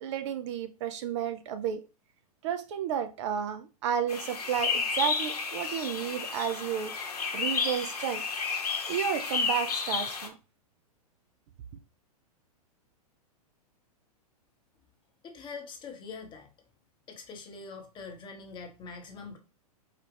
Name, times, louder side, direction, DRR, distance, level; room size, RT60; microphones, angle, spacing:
voice 1, 0.0-1.8 2.4-6.9 7.3-8.2 8.9-10.3, right 8 dB, 50° right, 0.5 m, -32 dB
sound 1, 4.1-10.3, left 5 dB, 70° left, 0.8 m, -32 dB
voice 2, 15.2-16.5 17.1-19.4, left 4 dB, 25° left, 0.9 m, -43 dB
4.7 x 2.3 x 3.3 m
figure-of-eight pair, 105°, 20 cm